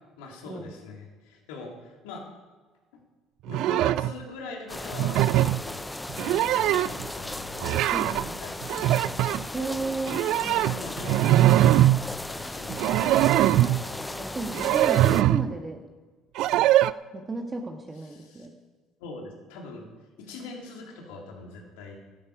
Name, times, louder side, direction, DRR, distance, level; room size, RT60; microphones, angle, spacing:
voice 1, 0.2-2.3 3.5-7.7 8.0-9.1 10.2-11.9 12.3-14.0 14.8-14.9 17.9-18.5 19.0-19.9 20.2-22.0, left 3 dB, 70° left, 0 dB, 3.2 m, -43 dB
sound 1, 3.5-4.1 4.9-5.6 6.1-7.1 7.6-8.3 8.6-9.4 10.1-12.0 12.7-13.8 14.5-15.5 16.4-16.9, right 14 dB, 60° right, 0.4 m, -22 dB
sound 2, 4.7-15.2, left 1 dB, 10° left, 0.7 m, -36 dB
voice 2, 7.9-8.4 9.5-10.5 13.5-15.8 17.1-18.5, right 3 dB, 25° right, 3 dB, 1.5 m, -34 dB
14.0 x 13.5 x 5.0 m, 1.4 s
hypercardioid pair, 60°, 0 cm